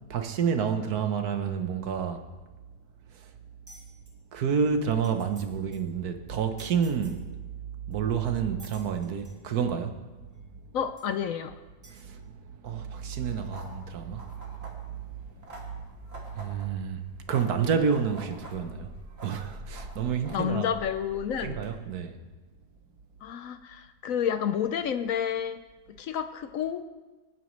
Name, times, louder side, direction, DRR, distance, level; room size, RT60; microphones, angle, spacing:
voice 1, 0.1-2.2 4.3-7.2 7.9-10.0 11.9-12.2 12.6-14.2 16.3-17.0 17.3-18.9 19.2-20.7 21.4-22.2, right 6 dB, 70° right, 7 dB, 1.5 m, -29 dB
sound 1, 3.7-4.1 4.6-4.7 4.9-5.4 5.7-5.9 6.6-7.2 7.9-8.0 8.6-9.4 10.3-10.4 11.0-11.1 11.8-12.0, equal, 15° right, 2.9 m, -52 dB
voice 2, 10.7-11.6 20.3-21.6 23.2-25.6 26.0-26.8, left 8 dB, 70° left, 10 dB, 0.9 m, -30 dB
sound 2, 12.9-21.7, right 1 dB, 40° right, 2.2 m, -46 dB
26.0 x 9.1 x 3.2 m, 1.2 s
omnidirectional pair, 1.7 m